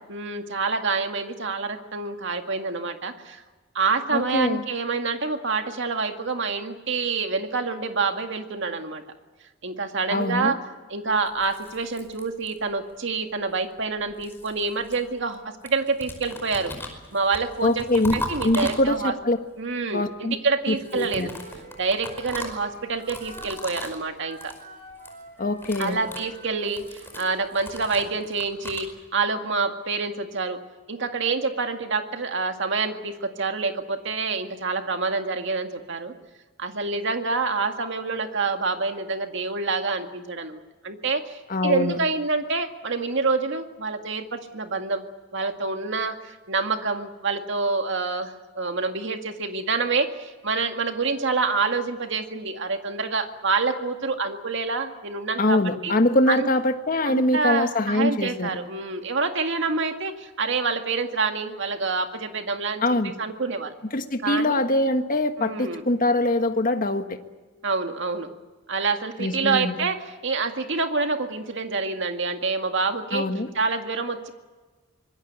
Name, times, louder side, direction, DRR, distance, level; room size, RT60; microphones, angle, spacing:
voice 1, 0.0-3.4 3.7-9.0 9.6-10.6 10.9-16.7 17.1-19.1 19.6-21.3 21.8-24.5 25.8-30.6 30.9-36.1 36.6-45.0 45.3-55.9 56.3-56.5 57.0-63.7 64.2-64.6 65.4-65.8 67.6-68.3 68.7-73.3 73.5-74.3, right 4 dB, 65° right, 5 dB, 2.1 m, -27 dB
voice 2, 4.1-4.6 10.1-10.5 17.6-18.1 18.4-19.4 19.9-20.4 20.7-21.3 25.4-26.0 41.5-42.0 55.4-58.6 62.8-63.1 63.9-67.2 69.2-69.7 73.1-73.5, left 1 dB, 45° left, 7 dB, 1.6 m, -23 dB
sound 1, 11.3-12.8 13.8-15.4 15.6-19.3 20.7-24.0 24.3-24.6 24.9-25.2 25.5-28.9, left 1 dB, 10° left, 5.1 m, -38 dB
Wind instrument woodwind instrument, 20.8-23.8 24.2-27.6, right 1 dB, 40° right, 7.0 m, -46 dB
25.5 x 21.0 x 8.2 m, 1.3 s
head